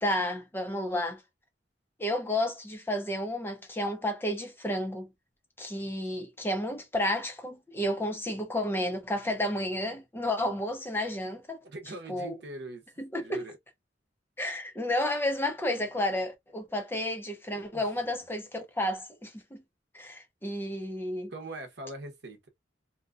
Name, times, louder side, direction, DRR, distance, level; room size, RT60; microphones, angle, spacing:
voice 1, 0.0-1.2 2.0-5.1 5.6-11.6 12.1-12.3 13.0-13.4 14.4-19.6 19.9-21.3, left 1 dB, 10° left, 0.5 m, -31 dB
voice 2, 11.6-12.8 13.2-13.6 17.7-17.9 21.3-22.5, right 2 dB, 65° right, 0.8 m, -42 dB
2.7 x 2.2 x 2.4 m
head